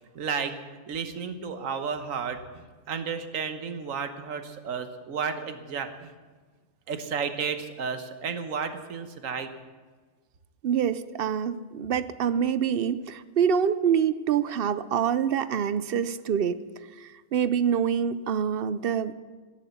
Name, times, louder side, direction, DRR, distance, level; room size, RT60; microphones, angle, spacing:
voice 1, 0.1-0.6 0.9-6.1 6.9-9.5, right 6 dB, 75° right, 8 dB, 1.4 m, -32 dB
voice 2, 10.6-16.6 17.0-19.1, right 8 dB, 60° right, 14 dB, 0.6 m, -26 dB
16.0 x 11.0 x 7.1 m, 1.4 s
omnidirectional pair, 1.4 m